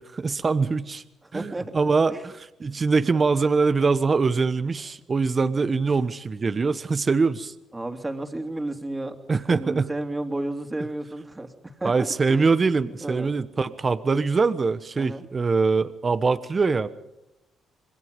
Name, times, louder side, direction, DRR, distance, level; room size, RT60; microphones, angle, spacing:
voice 1, 0.0-1.0 1.3-2.3 2.6-7.5 9.3-9.9 11.8-16.9, right 4 dB, 40° right, 13 dB, 1.2 m, -23 dB
voice 2, 1.2-1.8 2.1-2.3 5.9-6.0 7.7-9.2 9.4-12.5 13.0-13.3 15.0-15.2, right 2 dB, 20° right, 5 dB, 3.1 m, -32 dB
27.0 x 21.5 x 5.3 m, 0.91 s
supercardioid pair, 60°, 0 cm